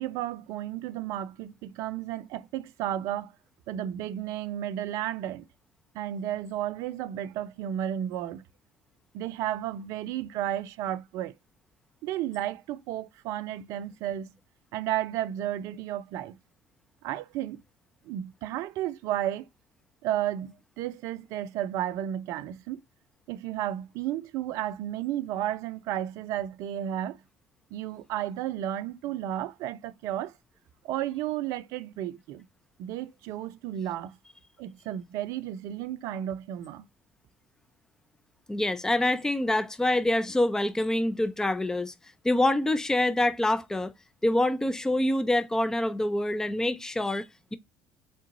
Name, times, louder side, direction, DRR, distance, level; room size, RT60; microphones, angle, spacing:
voice 1, 0.0-3.3 3.7-5.5 5.9-8.4 9.1-11.3 12.0-14.3 14.7-16.4 17.0-17.6 18.0-19.5 20.0-22.8 23.3-27.2 27.7-30.3 30.8-32.4 32.8-34.2 34.6-36.8, right 12 dB, 65° right, 0.5 m, -33 dB
voice 2, 38.5-41.9 42.2-43.9 44.2-47.3, left 1 dB, 10° left, 0.5 m, -26 dB
3.8 x 3.7 x 2.5 m
hypercardioid pair, 65°, 6 cm